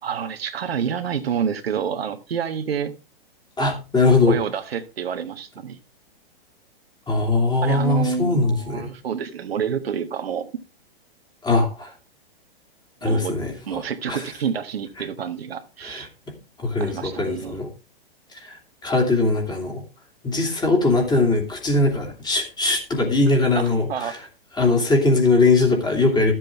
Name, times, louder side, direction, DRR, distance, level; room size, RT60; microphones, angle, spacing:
voice 1, 0.0-2.9 4.3-5.8 7.6-10.5 13.0-16.1 16.8-17.6 23.5-24.2, right 7 dB, 80° right, 7 dB, 1.5 m, -28 dB
voice 2, 3.6-4.4 7.1-8.9 11.4-11.9 13.0-14.2 15.8-16.1 16.6-17.7 18.4-18.6 18.8-19.8 20.2-24.2 24.6-26.3, left 3 dB, 15° left, 1 dB, 2.8 m, -20 dB
13.0 x 7.6 x 3.5 m, 0.30 s
hypercardioid pair, 130°, 30 cm